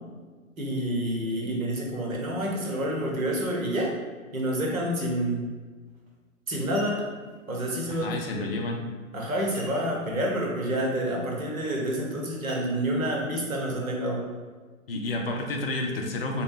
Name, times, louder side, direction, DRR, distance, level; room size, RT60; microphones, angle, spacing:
voice 1, 0.6-3.9 4.3-5.4 6.5-7.0 7.5-8.5 9.1-14.2, right 1 dB, 85° right, -1 dB, 0.9 m, -28 dB
sound 1, 5.9-6.1 6.5-7.3 9.5-10.2 10.5-10.6 11.1-11.4 12.5-13.3 13.8-13.9, equal, 20° right, 0.6 m, -47 dB
voice 2, 7.9-8.8 14.9-16.4, left 2 dB, 45° left, 2 dB, 0.4 m, -30 dB
3.0 x 2.2 x 3.2 m, 1.4 s
figure-of-eight pair, 115°, 41 cm